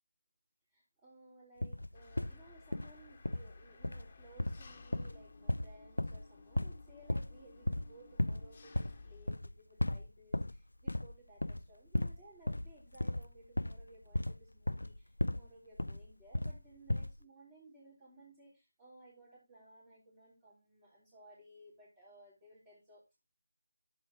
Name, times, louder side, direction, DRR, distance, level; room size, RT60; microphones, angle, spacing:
voice 1, 0.7-23.3, right 1 dB, 15° right, -8 dB, 3.4 m, -59 dB
sound 1, 1.6-2.4 2.7-2.9 3.2-3.5 3.8-4.1 4.4-6.2 6.5-6.8 7.1-7.4 7.7-7.9 8.2-8.5 8.7-9.0 9.3-9.5 9.8-10.6 10.9-11.2 11.4-11.7 11.9-12.2 12.5-15.5 15.8-16.6 16.9-17.2, left 1 dB, 80° left, 0.4 m, -35 dB
Engine, 1.9-9.4, left 3 dB, 30° left, 1.4 m, -57 dB
12.0 x 6.6 x 2.9 m, 0.22 s
figure-of-eight pair, 165°, 0 cm